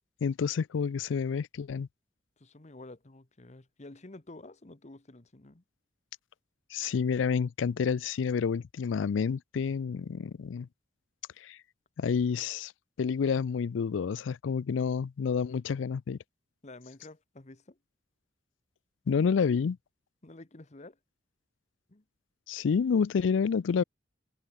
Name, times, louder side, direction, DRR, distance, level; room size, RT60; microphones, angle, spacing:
voice 1, 0.2-1.9 6.7-10.7 11.4-11.6 12.0-12.7 13.0-16.2 19.1-19.8 22.5-23.8, left 6 dB, 85° left, 0.4 m, -29 dB
voice 2, 2.4-5.6 16.6-17.8 20.2-21.0 21.9-22.0, left 2 dB, 40° left, 1.2 m, -50 dB
head